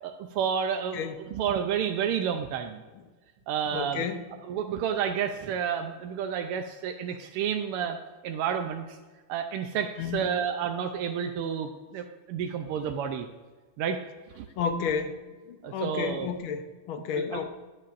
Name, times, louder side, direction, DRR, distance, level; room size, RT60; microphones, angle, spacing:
voice 1, 0.0-2.8 3.5-4.0 4.4-8.0 8.2-9.0 9.3-13.3 13.8-14.0 14.4-14.5 15.6-16.3 17.1-17.5, right 8 dB, 90° right, 5 dB, 1.6 m, -30 dB
voice 2, 3.7-4.3 10.0-10.4 14.6-15.2 15.5-17.5, left 6 dB, 75° left, 8 dB, 1.6 m, -31 dB
20.0 x 6.6 x 2.5 m, 1.3 s
omnidirectional pair, 2.4 m